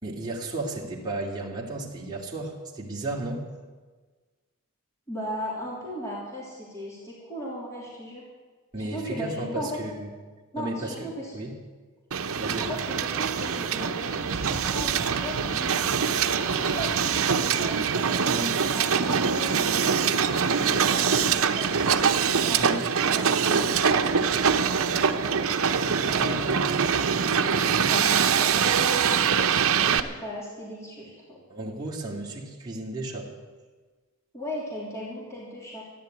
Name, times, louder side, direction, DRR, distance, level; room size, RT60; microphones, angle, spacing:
voice 1, 0.0-3.5 8.7-10.1 10.6-11.1 11.3-11.5 12.4-12.8 18.3-18.6 22.6-22.8 26.0-26.8 31.5-33.3, right 2 dB, 20° right, -4 dB, 2.5 m, -34 dB
voice 2, 5.1-8.3 8.8-9.8 10.5-11.4 12.6-18.3 18.7-22.0 22.4-25.0 25.8-26.6 27.6-31.4 34.3-35.8, equal, 15° left, -6 dB, 3.5 m, -37 dB
Hiss, 12.1-30.0, right 6 dB, 65° right, 0.8 m, -24 dB
14.0 x 10.5 x 9.3 m, 1.4 s
head